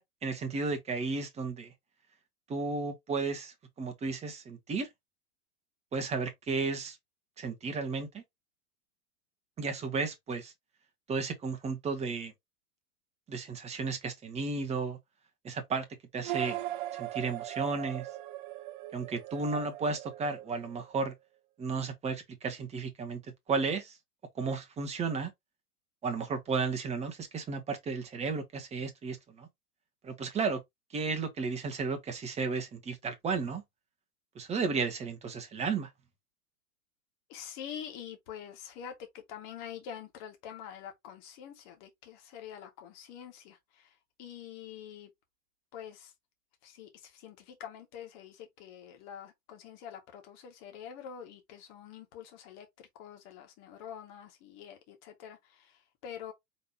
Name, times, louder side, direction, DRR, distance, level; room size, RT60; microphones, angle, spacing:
voice 1, 0.0-1.7 2.5-4.9 5.9-7.0 7.4-8.2 9.6-10.5 11.1-12.3 13.3-15.0 15.4-15.9 16.1-16.6 16.9-18.1 18.9-21.1 21.6-23.2 23.5-24.0 24.4-25.3 26.0-29.5 30.0-30.6 30.9-33.6 34.3-35.9, right 4 dB, 15° right, 1.2 m, -33 dB
sound 1, 16.2-21.1, right 15 dB, 35° right, 0.5 m, -39 dB
voice 2, 37.3-43.9 44.2-45.1 45.7-46.1 46.6-56.3, left 9 dB, 35° left, 1.9 m, -46 dB
5.2 x 3.5 x 2.8 m
figure-of-eight pair, 95°, 44 cm